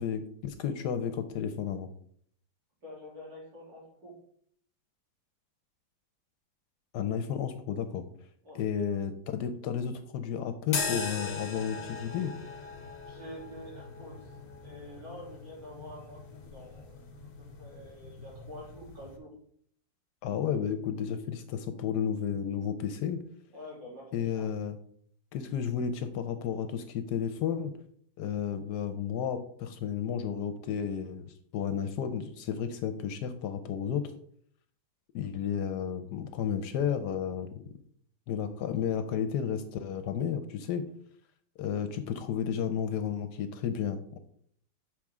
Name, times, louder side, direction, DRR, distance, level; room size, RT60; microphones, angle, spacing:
voice 1, 0.0-1.9 6.9-8.0 8.5-12.3 20.2-23.2 24.1-24.8 25.3-27.7 28.2-34.1 35.1-37.5 38.3-40.8 41.6-44.2, left 8 dB, 70° left, 9 dB, 1.1 m, -32 dB
voice 2, 2.8-4.1 8.4-8.6 13.1-14.3 14.6-19.3 23.5-24.5, left 1 dB, 75° right, -6 dB, 3.8 m, -47 dB
sound 1, 10.7-19.2, left 4 dB, 45° left, 0.7 m, -40 dB
7.3 x 4.8 x 3.6 m, 0.62 s
omnidirectional pair, 2.0 m